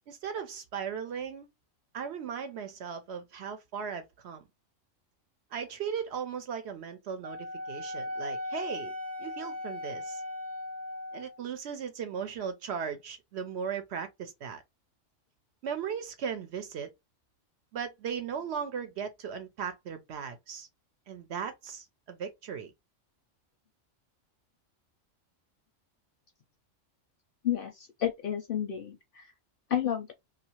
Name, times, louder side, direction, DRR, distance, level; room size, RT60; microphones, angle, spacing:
voice 1, 0.1-1.5 1.9-4.4 5.5-8.9 9.2-10.2 11.1-14.6 15.6-16.9 17.7-20.7 21.1-22.7, right 7 dB, 65° right, 0.8 m, -37 dB
Wind instrument woodwind instrument, 7.2-11.4, left 2 dB, 40° right, 0.9 m, -38 dB
voice 2, 27.4-29.3 29.7-30.1, left 10 dB, 60° left, 0.6 m, -31 dB
2.6 x 2.4 x 2.9 m
omnidirectional pair, 1.3 m